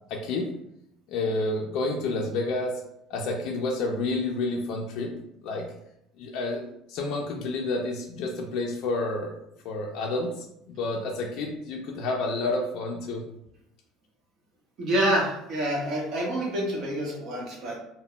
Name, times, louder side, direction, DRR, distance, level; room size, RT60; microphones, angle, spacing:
voice 1, 0.1-0.5 1.1-2.7 3.1-5.1 5.4-5.7 6.2-6.6 6.9-9.3 9.6-13.2, left 2 dB, 50° left, -1 dB, 0.4 m, -29 dB
voice 2, 14.8-17.8, right 1 dB, 45° right, -2 dB, 0.9 m, -27 dB
2.1 x 2.1 x 3.7 m, 0.78 s
cardioid pair, 170°, 0 cm